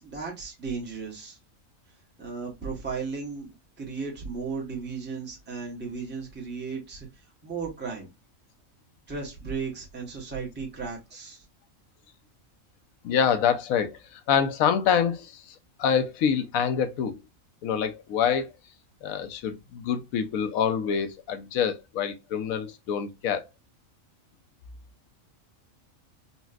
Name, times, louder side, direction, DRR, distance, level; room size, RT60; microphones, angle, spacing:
voice 1, 0.0-1.4 2.2-8.1 9.1-11.4, right 5 dB, 10° right, 0.8 m, -35 dB
voice 2, 13.0-15.4 15.8-17.2 17.6-18.5 19.0-23.4, left 7 dB, 90° left, 1.1 m, -26 dB
4.1 x 2.1 x 2.3 m
omnidirectional pair, 1.4 m